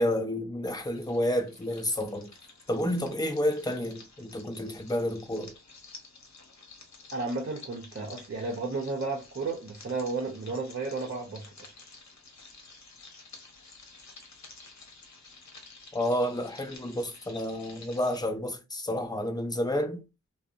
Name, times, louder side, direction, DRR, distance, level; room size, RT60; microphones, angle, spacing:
voice 1, 0.0-2.3 2.7-5.5 15.9-20.0, left 1 dB, 15° left, 0.5 m, -30 dB
sound 1, 0.6-18.2, left 3 dB, 65° left, 0.8 m, -51 dB
voice 2, 7.1-11.7, right 3 dB, 45° right, 0.7 m, -33 dB
2.6 x 2.0 x 2.4 m
wide cardioid pair, 60°, 29 cm